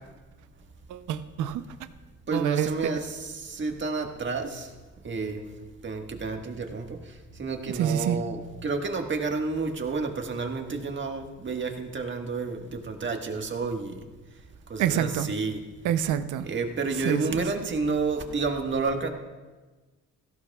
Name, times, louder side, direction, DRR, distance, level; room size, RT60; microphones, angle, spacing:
voice 1, 0.9-1.7 2.3-2.9 7.7-8.2 14.8-15.3 15.8-16.5 17.0-17.4, right 10 dB, 85° right, 11 dB, 0.7 m, -27 dB
voice 2, 2.3-4.7 5.0-5.4 5.8-7.0 7.4-14.0 14.7-15.6 16.4-19.1, right 4 dB, 40° right, 4 dB, 1.6 m, -30 dB
17.5 x 15.0 x 2.4 m, 1.3 s
cardioid pair, 90°, 30 cm